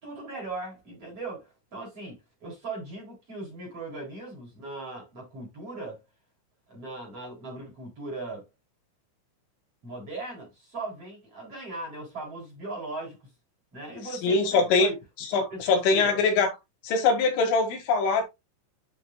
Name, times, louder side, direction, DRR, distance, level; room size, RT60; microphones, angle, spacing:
voice 1, 0.0-6.0 6.7-8.4 9.8-13.2 13.7-15.0 15.3-16.2, right 2 dB, 30° right, 4.1 m, -38 dB
voice 2, 14.2-14.9 15.3-16.5 16.8-18.2, left 4 dB, 75° left, 4.2 m, -22 dB
9.7 x 5.9 x 2.2 m
omnidirectional pair, 5.8 m